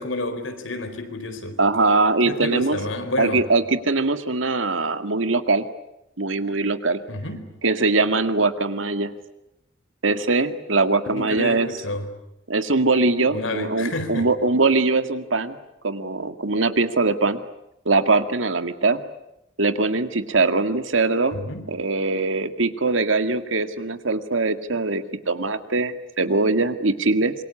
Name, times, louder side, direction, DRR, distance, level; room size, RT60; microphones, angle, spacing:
voice 1, 0.0-1.6 2.2-3.5 7.1-7.5 11.1-12.1 13.3-14.3 21.3-21.6, left 2 dB, 80° left, 4.4 m, -29 dB
voice 2, 1.6-2.8 3.2-5.7 6.2-7.0 7.6-9.1 10.0-11.7 12.5-15.6 15.8-17.4 17.9-19.0 19.6-21.4 21.7-27.3, right 3 dB, 80° right, 1.9 m, -22 dB
26.5 x 23.0 x 9.9 m
head